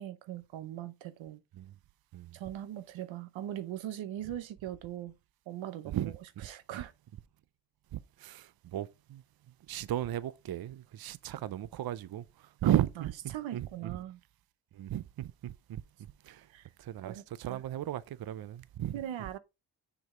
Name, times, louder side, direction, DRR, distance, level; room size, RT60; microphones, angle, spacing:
voice 1, 0.0-1.4 2.3-5.2 5.5-6.1 6.4-6.9 12.6-14.2 16.5-16.7 17.0-17.6 18.9-19.4, right 12 dB, 90° right, 0.8 m, -40 dB
voice 2, 7.9-9.2 9.7-14.0 14.7-15.8 16.2-16.5 16.8-18.9, right 12 dB, 55° right, 0.6 m, -35 dB
6.5 x 5.2 x 3.7 m
cardioid pair, 85°, 45 cm